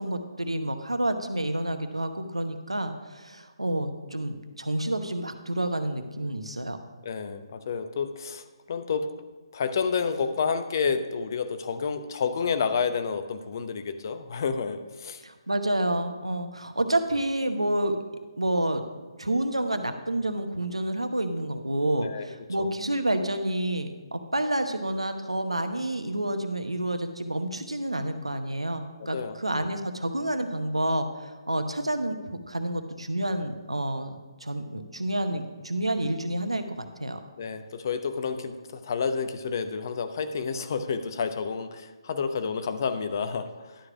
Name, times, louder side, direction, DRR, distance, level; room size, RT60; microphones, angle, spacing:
voice 1, 0.0-6.8 15.2-18.0 18.4-18.8 19.2-32.2 32.5-37.2, right 1 dB, 80° right, 8 dB, 1.0 m, -29 dB
voice 2, 7.0-9.1 9.5-15.2 22.0-22.3 22.6-22.7 29.1-29.7 37.4-43.5, left 5 dB, 40° left, 10 dB, 0.7 m, -30 dB
11.5 x 4.9 x 5.9 m, 1.3 s
figure-of-eight pair, 140°, 3 cm